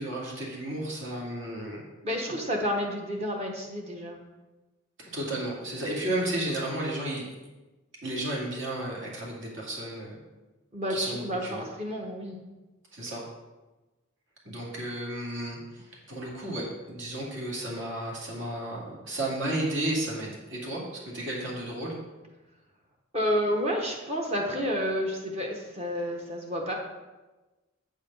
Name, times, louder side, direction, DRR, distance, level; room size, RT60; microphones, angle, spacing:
voice 1, 0.0-1.8 5.0-7.2 8.0-10.2 10.9-11.7 12.9-13.2 14.4-22.0, right 1 dB, 65° right, -4 dB, 2.4 m, -33 dB
voice 2, 2.0-4.2 10.7-12.4 23.1-26.7, equal, 30° right, 0 dB, 1.0 m, -30 dB
8.2 x 5.0 x 5.4 m, 1.1 s
head